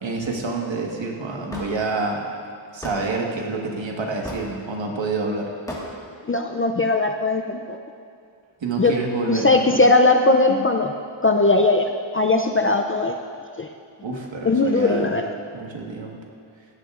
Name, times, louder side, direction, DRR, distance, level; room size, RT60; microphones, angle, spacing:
voice 1, 0.0-2.3 2.7-5.5 8.6-9.6 14.0-15.2 15.5-16.2, right 3 dB, 65° right, 0 dB, 1.6 m, -27 dB
Hammer / Wood, 1.5-1.7 2.8-3.0 4.2-4.5 5.7-5.9, left 1 dB, 5° left, 1.6 m, -33 dB
voice 2, 6.3-7.8 8.8-9.0 9.3-10.9 11.2-13.1 13.6-13.7 14.4-15.3, left 2 dB, 30° left, 4 dB, 0.4 m, -19 dB
15.5 x 11.0 x 2.5 m, 2.3 s
wide cardioid pair, 130°, 49 cm